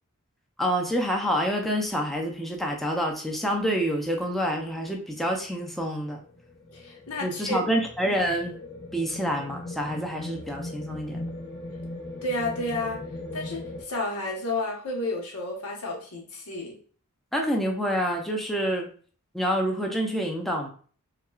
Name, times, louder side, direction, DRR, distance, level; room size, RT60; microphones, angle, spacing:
voice 1, 0.6-6.2 7.2-8.5 8.9-11.3 17.3-18.9 19.3-20.7, equal, ahead, 0 dB, 0.5 m, -27 dB
sound 1, 5.5-13.8, left 2 dB, 55° left, 1.1 m, -39 dB
voice 2, 6.7-7.6 12.2-13.0 13.3-16.8, left 2 dB, 85° left, 0 dB, 1.1 m, -31 dB
5.7 x 2.3 x 2.4 m, 0.43 s
head